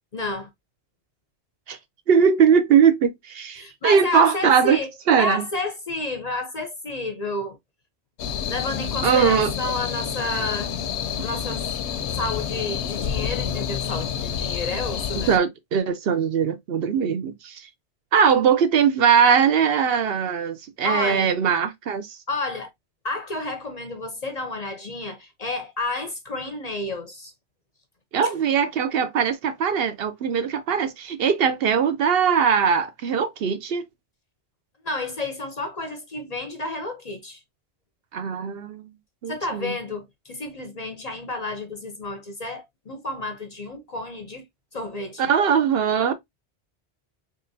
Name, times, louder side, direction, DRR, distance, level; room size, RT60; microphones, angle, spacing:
voice 1, 0.1-0.5 3.6-4.9 5.2-7.6 8.5-10.7 11.2-11.7 12.1-15.3 20.8-21.4 22.3-22.7 23.0-27.3 34.8-37.4 39.3-44.4 44.7-45.3, left 2 dB, 45° left, 0.6 m, -31 dB
voice 2, 2.1-4.8 5.1-5.4 9.0-9.5 15.1-17.7 18.1-22.2 28.1-33.9 38.1-38.9 39.2-39.7 45.2-46.1, right 7 dB, 65° right, 0.8 m, -20 dB
sound 1, 8.2-15.4, left 8 dB, 80° left, 0.8 m, -28 dB
3.8 x 3.3 x 2.5 m
omnidirectional pair, 1.1 m